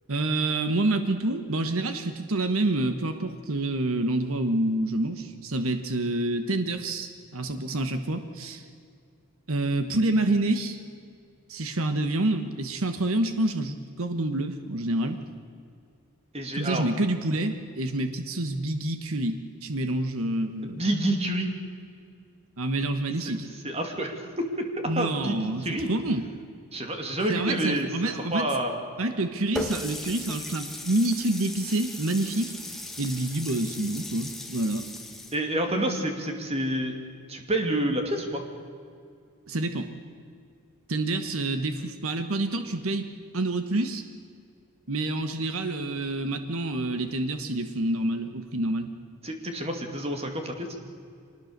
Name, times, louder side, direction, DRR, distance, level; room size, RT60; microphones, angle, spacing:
voice 1, 0.1-8.6 9.5-10.8 11.5-15.2 16.5-20.8 22.6-23.5 24.9-26.3 27.3-28.5 29.0-32.5 33.0-34.9 39.5-39.9 40.9-43.1 43.3-44.0 44.9-48.9, right 2 dB, 70° right, 8 dB, 1.3 m, -27 dB
voice 2, 16.3-16.8 20.6-21.5 23.6-25.9 26.7-28.7 35.3-36.9 37.3-38.4 49.2-50.7, right 1 dB, 30° right, 4 dB, 2.6 m, -28 dB
Water tap faucet, 29.6-35.3, left 1 dB, ahead, 1.7 m, -37 dB
24.5 x 20.0 x 6.7 m, 2.3 s
head